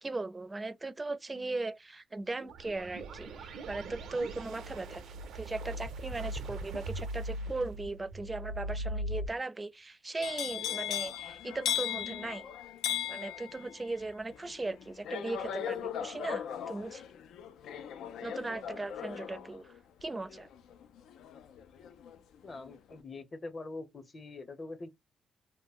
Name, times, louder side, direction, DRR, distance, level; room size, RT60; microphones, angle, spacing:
voice 1, 0.0-5.0 5.3-12.5 13.1-17.0 18.2-19.7 20.0-20.5, right 2 dB, 20° right, 0.4 m, -38 dB
sound 1, 2.4-9.3, right 1 dB, 75° right, 0.5 m, -40 dB
sound 2, 10.2-22.2 22.5-22.9, left 10 dB, 80° left, 0.3 m, -38 dB
voice 2, 22.4-24.9, left 2 dB, 35° left, 0.7 m, -44 dB
2.2 x 2.0 x 3.5 m
cardioid pair, 85°, 0 cm